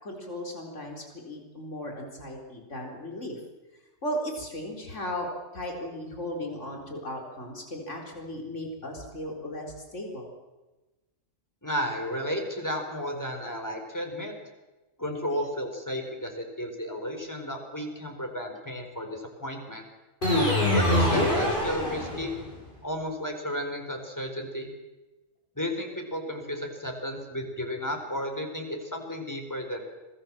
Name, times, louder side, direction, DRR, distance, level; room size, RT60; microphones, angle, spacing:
voice 1, 0.0-3.4 4.0-10.3, equal, 65° left, 1 dB, 4.5 m, -36 dB
voice 2, 11.6-14.3 15.0-19.8 20.7-22.3 22.8-24.7 25.6-29.8, equal, 15° left, 3 dB, 4.3 m, -33 dB
sound 1, 20.2-22.5, left 1 dB, 40° left, 8.4 m, -24 dB
26.5 x 19.5 x 7.5 m, 1.1 s
omnidirectional pair, 1.4 m